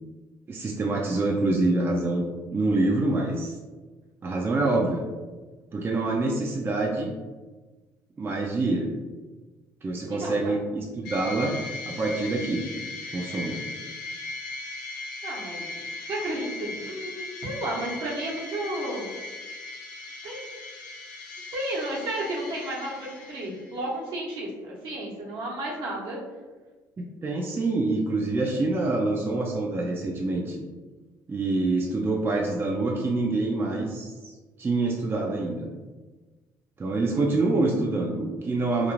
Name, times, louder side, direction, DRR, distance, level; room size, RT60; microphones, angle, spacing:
voice 1, 0.5-2.2 2.5-3.5 4.2-5.1 5.7-7.1 8.2-8.9 9.8-11.5 11.9-12.6 13.1-13.6 27.0-30.6 31.3-34.3 34.6-35.7 36.8-38.9, right 2 dB, 25° right, -1 dB, 0.4 m, -26 dB
voice 2, 10.1-10.5 15.2-15.7 16.1-19.1 20.2-20.5 21.5-26.2, right 1 dB, 65° right, -4 dB, 0.9 m, -32 dB
sound 1, 11.0-23.9, left 3 dB, 85° left, 0.4 m, -38 dB
2.5 x 2.0 x 3.0 m, 1.3 s
supercardioid pair, 70°, 8 cm